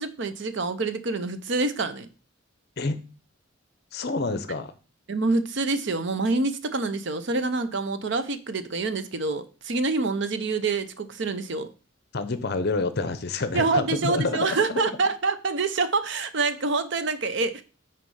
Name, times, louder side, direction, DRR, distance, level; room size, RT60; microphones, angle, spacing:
voice 1, 0.0-2.1 5.1-11.7 13.5-17.6, right 3 dB, 55° right, 0.6 m, -26 dB
voice 2, 3.9-4.7 12.1-14.8, left 3 dB, 50° left, 0.7 m, -28 dB
6.2 x 4.4 x 5.4 m
head